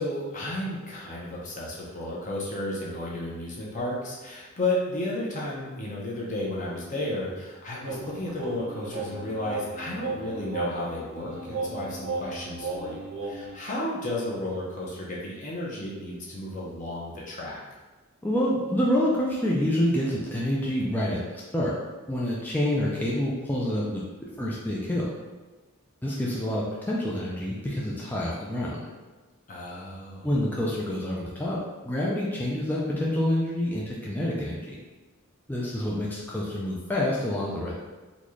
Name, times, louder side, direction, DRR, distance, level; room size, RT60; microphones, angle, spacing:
voice 1, 0.0-17.6 29.5-30.3, left 1 dB, 35° left, -5 dB, 0.8 m, -33 dB
sound 1, 7.8-13.6, right 3 dB, 75° right, 0.5 m, -35 dB
voice 2, 18.2-21.2 21.5-21.7 22.1-24.1 24.4-25.1 26.0-28.8 30.2-31.6 31.8-34.8 35.5-37.7, left 1 dB, 10° left, -6 dB, 0.4 m, -27 dB
4.0 x 2.4 x 3.1 m, 1.2 s
head